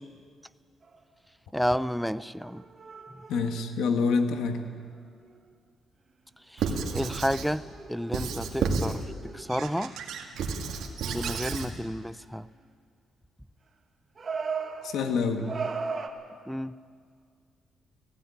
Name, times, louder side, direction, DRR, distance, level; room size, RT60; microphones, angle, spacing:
sound 1, 0.8-1.0 2.4-4.9 5.3-5.4 7.0-7.1 7.6-10.2 10.8-11.8 14.2-16.1, right 5 dB, 40° right, 1.8 m, -38 dB
voice 1, 1.5-2.6 3.1-3.2 6.5-9.9 11.0-12.5 16.5-16.8, equal, ahead, 0.5 m, -31 dB
voice 2, 3.3-4.7 14.8-15.5, left 4 dB, 80° left, 1.7 m, -26 dB
Squeak / Writing, 6.6-7.5 8.1-9.0 9.5-11.7, right 5 dB, 75° right, 2.0 m, -31 dB
16.5 x 16.0 x 9.9 m
cardioid pair, 90°, 0 cm